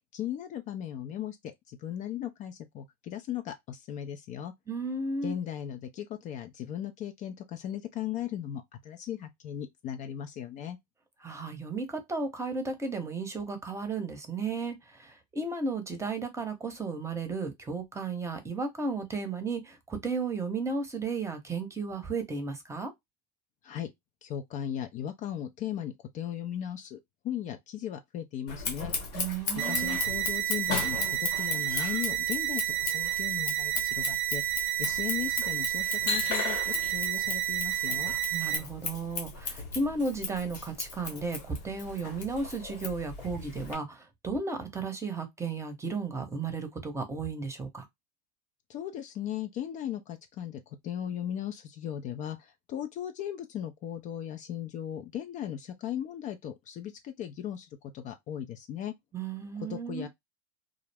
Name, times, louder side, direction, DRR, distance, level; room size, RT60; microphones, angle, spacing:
voice 1, 0.1-4.5 5.2-10.8 23.6-23.9 24.2-27.0 27.2-28.9 29.7-38.1 48.7-57.7 57.9-58.9 59.7-60.1, left 10 dB, 40° left, 0.4 m, -37 dB
voice 2, 4.7-5.3 11.2-22.9 29.1-30.0 38.3-47.9 59.1-60.1, right 4 dB, 15° right, 0.8 m, -34 dB
Scissors, 28.5-43.8, left 4 dB, 90° left, 1.3 m, -36 dB
sound 1, 29.6-38.6, right 13 dB, 45° right, 0.5 m, -30 dB
2.3 x 2.0 x 3.3 m
hypercardioid pair, 100°, 20 cm